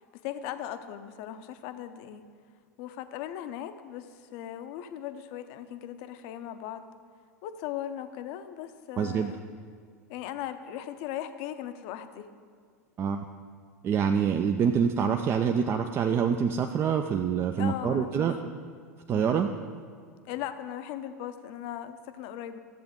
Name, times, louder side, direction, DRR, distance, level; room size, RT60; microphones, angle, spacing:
voice 1, 0.2-2.2 2.8-4.1 4.3-6.8 7.4-9.4 10.1-12.3 17.6-18.5 19.1-19.4 20.3-22.6, left 11 dB, 50° left, 10 dB, 0.6 m, -38 dB
voice 2, 9.0-9.3 13.0-13.2 13.8-18.4 19.1-19.5, right 7 dB, 30° right, 6 dB, 0.4 m, -26 dB
13.5 x 7.7 x 3.6 m, 2.1 s
figure-of-eight pair, 85°, 9 cm